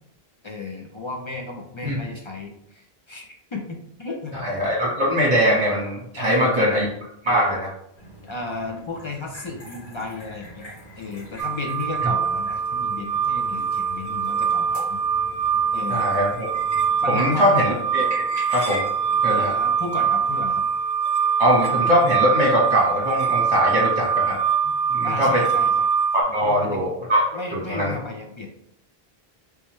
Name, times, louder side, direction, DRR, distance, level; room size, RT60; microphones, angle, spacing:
voice 1, 0.4-4.4 6.2-6.9 8.2-10.7 11.0-15.0 15.7-16.1 17.0-17.6 19.3-20.6 25.0-25.9 26.4-26.9 27.3-28.5, left 3 dB, 40° left, 1 dB, 0.4 m, -34 dB
voice 2, 4.3-6.9 7.2-7.7 15.9-16.5 17.1-18.8 19.2-19.5 21.4-24.4 24.9-25.4 26.1-27.2 27.5-28.0, equal, 30° right, -3 dB, 1.0 m, -21 dB
sound 1, 8.0-20.5, equal, 90° left, 2.0 m, -42 dB
sound 2, 11.4-26.2, right 6 dB, 50° right, 0.5 m, -23 dB
3.3 x 3.2 x 3.1 m, 0.73 s
omnidirectional pair, 1.1 m